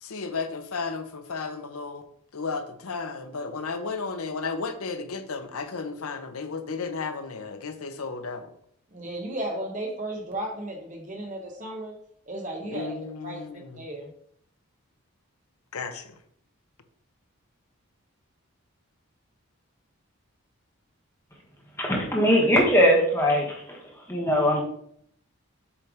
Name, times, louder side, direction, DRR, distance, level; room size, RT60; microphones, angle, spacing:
voice 1, 0.0-2.1 2.3-8.5 12.6-13.8 15.7-16.1, left 4 dB, 80° left, 0.8 m, -33 dB
voice 2, 8.9-11.9 12.3-12.9 13.2-13.4 13.8-14.1, right 1 dB, 35° right, 1.1 m, -34 dB
voice 3, 21.8-23.8 24.1-24.6, equal, 10° left, 1.3 m, -21 dB
7.2 x 3.3 x 5.0 m
head